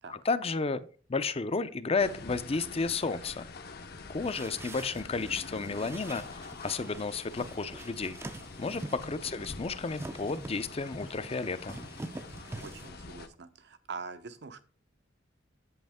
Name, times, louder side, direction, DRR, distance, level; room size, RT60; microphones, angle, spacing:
voice 1, 0.1-3.5 4.1-8.2 8.6-11.7, left 4 dB, 30° left, 13 dB, 0.5 m, -32 dB
sound 1, 2.0-13.3, left 3 dB, 55° left, 0.9 m, -46 dB
sound 2, 4.2-12.9, right 1 dB, 15° right, 0.5 m, -45 dB
voice 2, 12.6-14.6, right 4 dB, 65° right, 11 dB, 0.8 m, -44 dB
8.4 x 7.9 x 3.5 m, 0.38 s
head